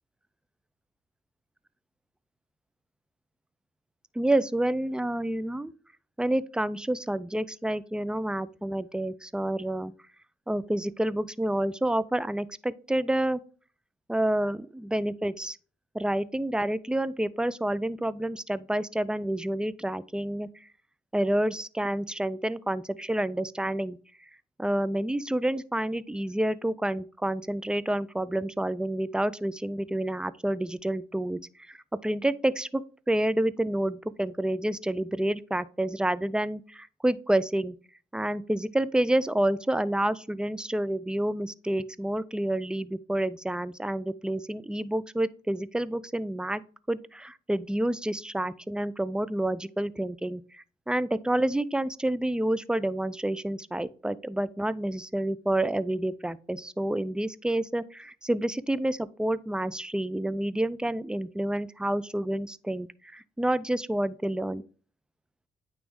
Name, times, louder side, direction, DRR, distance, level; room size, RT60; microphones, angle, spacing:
voice 1, 4.2-5.7 6.2-9.9 10.5-13.4 14.1-15.6 15.9-20.5 21.1-24.0 24.6-31.4 31.7-37.7 38.1-46.6 46.9-62.9 63.1-64.6, right 1 dB, 5° right, 0.4 m, -29 dB
9.1 x 3.1 x 3.5 m
supercardioid pair, 60°, 17 cm